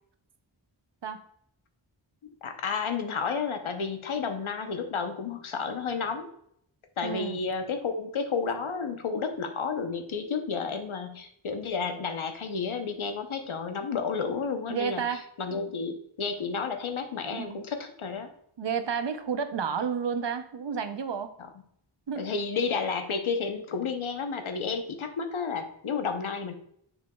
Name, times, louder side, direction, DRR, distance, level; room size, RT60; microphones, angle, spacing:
voice 1, 2.4-6.3 7.0-18.3 21.4-21.5 22.2-26.5, left 5 dB, 90° left, 6 dB, 0.9 m, -31 dB
voice 2, 7.0-7.4 14.7-15.2 15.5-15.6 17.3-17.6 18.6-21.3 22.1-22.2, right 6 dB, 60° right, 8 dB, 0.7 m, -31 dB
7.1 x 6.0 x 2.3 m, 0.69 s
wide cardioid pair, 65°, 47 cm